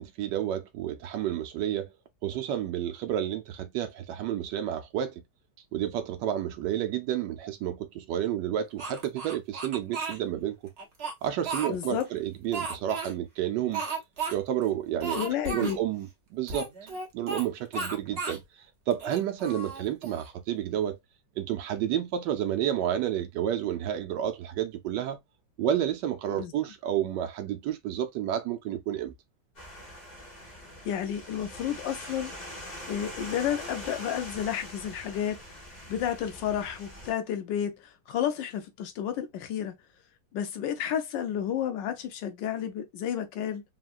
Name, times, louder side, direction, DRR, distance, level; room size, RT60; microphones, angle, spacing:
voice 1, 0.0-1.9 2.2-5.2 5.7-10.6 11.2-13.8 14.3-15.2 15.5-16.7 17.1-18.4 18.9-21.0 21.4-25.2 25.6-29.1, right 11 dB, 75° right, 1.2 m, -30 dB
Speech, 8.8-10.2 10.8-12.0 12.5-13.1 13.7-14.3 14.6-14.7 15.0-15.8 16.5-17.5 17.7-18.4 18.9-20.3, right 4 dB, 45° right, 1.0 m, -34 dB
voice 2, 11.7-12.1 15.1-15.8 26.4-26.5 30.8-32.3 32.9-35.4 35.9-39.7 40.3-43.6, left 9 dB, 80° left, 1.4 m, -31 dB
sound 1, 29.6-37.1, equal, 30° left, 0.8 m, -43 dB
3.6 x 2.2 x 2.4 m
omnidirectional pair, 2.0 m